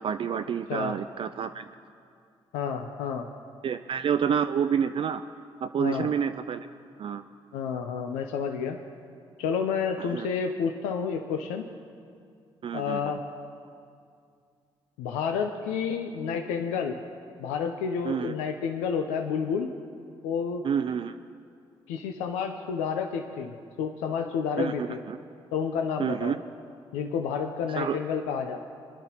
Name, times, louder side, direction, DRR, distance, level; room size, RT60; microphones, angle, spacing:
voice 1, 0.0-1.7 3.6-5.2 5.6-6.7 7.0-7.2 10.0-10.3 12.6-13.1 18.0-18.3 20.6-21.2 24.6-25.2 26.0-26.4 27.7-28.0, right 7 dB, 50° right, 8 dB, 0.4 m, -28 dB
voice 2, 2.5-3.3 5.8-6.1 7.5-8.8 9.4-11.6 12.7-13.2 15.0-17.0 17.4-19.7 20.2-20.7 21.9-25.0 25.5-26.3 26.9-28.6, left 6 dB, 90° left, 5 dB, 0.6 m, -30 dB
24.5 x 10.5 x 2.9 m, 2.3 s
supercardioid pair, 55°, 12 cm